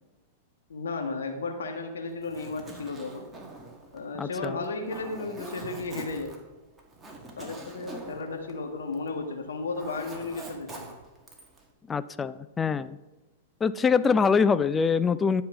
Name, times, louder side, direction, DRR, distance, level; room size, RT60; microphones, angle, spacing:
voice 1, 0.7-3.3 3.9-6.3 7.4-11.0, left 3 dB, 75° left, 4 dB, 1.6 m, -34 dB
Zipper (clothing), 2.1-9.2 9.5-11.6, right 2 dB, 15° right, 1.9 m, -44 dB
voice 2, 4.1-4.6 11.9-13.0 13.6-15.4, left 5 dB, 15° left, 14 dB, 0.4 m, -24 dB
11.0 x 5.6 x 4.9 m, 1.1 s
hypercardioid pair, 105°, 0 cm